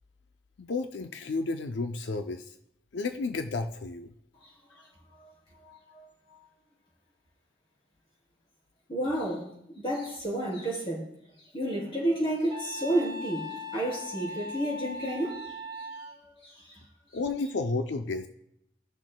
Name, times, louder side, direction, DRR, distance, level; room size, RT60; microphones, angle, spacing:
voice 1, 0.6-2.5 2.9-4.1 17.1-18.3, left 3 dB, 90° left, 0.5 m, -32 dB
voice 2, 4.4-6.5 8.9-9.5 9.7-11.1 11.5-16.8, right 1 dB, 30° left, 3.2 m, -32 dB
Wind instrument woodwind instrument, 12.5-16.2, left 1 dB, 25° right, 0.6 m, -39 dB
17.0 x 6.2 x 2.2 m
head